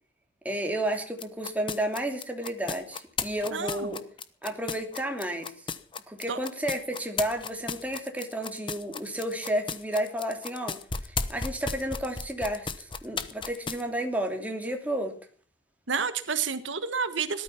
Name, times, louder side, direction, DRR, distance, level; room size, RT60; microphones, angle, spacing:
voice 1, 0.4-4.0 4.4-5.5 6.1-10.8 11.0-15.1, right 1 dB, 10° right, 3 dB, 2.9 m, -32 dB
sound 1, 1.2-13.8, left 5 dB, 25° left, 1.0 m, -34 dB
voice 2, 3.5-3.9 6.3-6.4 15.9-17.4, right 6 dB, 80° right, 11 dB, 1.4 m, -30 dB
18.5 x 12.5 x 5.8 m, 0.43 s
head